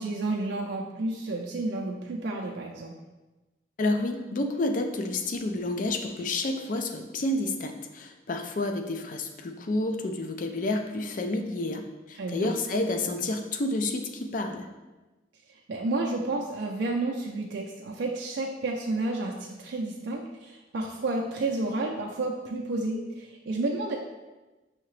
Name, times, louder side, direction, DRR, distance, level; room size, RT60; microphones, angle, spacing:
voice 1, 0.0-3.0 12.2-12.5 15.7-24.0, right 2 dB, 75° right, -1 dB, 0.4 m, -31 dB
voice 2, 3.8-14.7, left 2 dB, 45° left, 5 dB, 0.4 m, -30 dB
5.5 x 2.8 x 3.2 m, 1.1 s
head